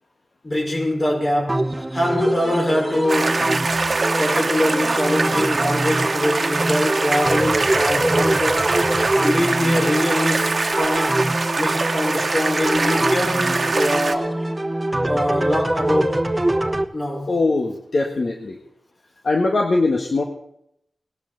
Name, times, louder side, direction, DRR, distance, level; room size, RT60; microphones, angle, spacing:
voice 1, 0.4-3.4 4.2-8.7 9.2-11.2 11.5-14.4 15.0-16.2 16.9-17.3, left 1 dB, 40° left, 5.1 m, -23 dB
sound 1, 1.5-16.8, right 1 dB, 20° right, 1.2 m, -24 dB
sound 2, 3.1-14.1, right 3 dB, 55° right, 1.2 m, -23 dB
voice 2, 17.3-18.6 19.2-20.2, left 3 dB, 65° left, 1.6 m, -21 dB
19.5 x 12.0 x 4.0 m
cardioid pair, 50°, 0 cm